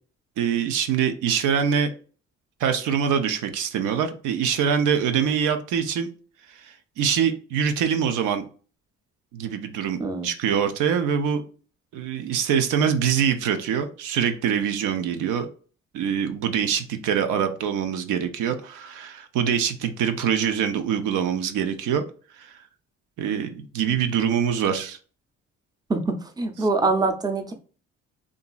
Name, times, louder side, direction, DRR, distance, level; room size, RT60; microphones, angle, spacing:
voice 1, 0.4-1.9 2.6-6.1 6.5-8.5 9.3-11.4 11.9-15.5 15.9-22.0 22.4-22.6 23.2-25.0, right 8 dB, 85° right, 7 dB, 0.5 m, -24 dB
voice 2, 25.9-27.5, right 3 dB, 15° right, 4 dB, 0.5 m, -24 dB
2.9 x 2.5 x 2.3 m, 0.39 s
cardioid pair, 90°, 30 cm